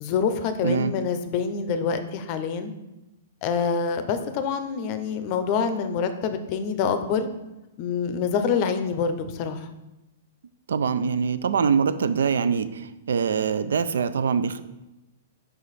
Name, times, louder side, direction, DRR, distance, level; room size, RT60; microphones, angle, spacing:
voice 1, 0.0-2.7 3.4-7.3 7.8-9.6, left 6 dB, 45° left, 9 dB, 0.5 m, -26 dB
voice 2, 10.7-12.8 13.1-14.6, right 6 dB, 85° right, 13 dB, 0.4 m, -23 dB
4.9 x 4.8 x 4.1 m, 0.98 s
hypercardioid pair, 135°, 0 cm